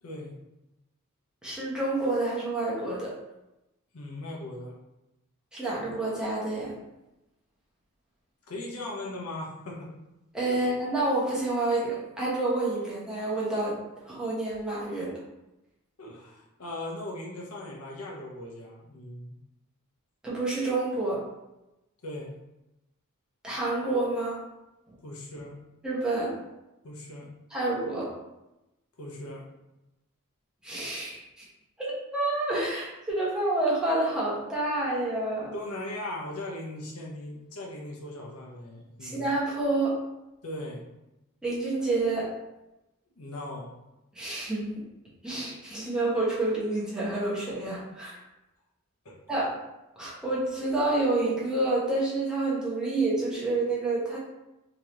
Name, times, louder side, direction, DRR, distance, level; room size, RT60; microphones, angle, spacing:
voice 1, 0.0-0.3 3.9-4.7 8.5-9.9 10.5-10.6 16.0-19.4 22.0-22.4 25.0-25.6 26.8-27.3 29.0-29.4 35.5-39.3 40.4-40.8 43.2-43.8 49.0-49.4, left 1 dB, 85° left, -2 dB, 0.8 m, -39 dB
voice 2, 1.4-3.1 5.5-6.7 10.3-13.7 14.0-15.1 20.2-21.2 23.4-24.4 24.9-25.0 25.8-26.4 27.5-28.1 30.6-31.5 31.8-35.5 39.0-39.9 41.4-42.3 44.1-44.7 45.2-48.2 49.3-49.5 50.0-54.2, right 2 dB, 5° right, -7 dB, 1.0 m, -28 dB
3.6 x 3.0 x 3.0 m, 0.95 s
head